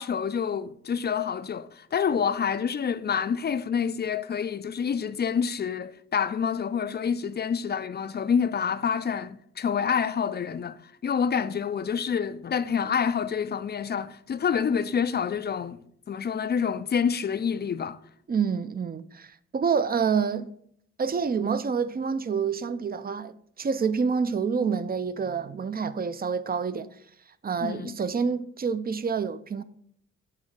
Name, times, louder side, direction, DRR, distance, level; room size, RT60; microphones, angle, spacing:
voice 1, 0.0-18.0 27.6-28.0, left 7 dB, 35° left, 0.4 m, -27 dB
voice 2, 18.3-20.5 21.0-23.3 23.6-26.9 27.4-29.6, right 6 dB, 30° right, 0.5 m, -27 dB
8.1 x 2.8 x 5.1 m
supercardioid pair, 55°, 30 cm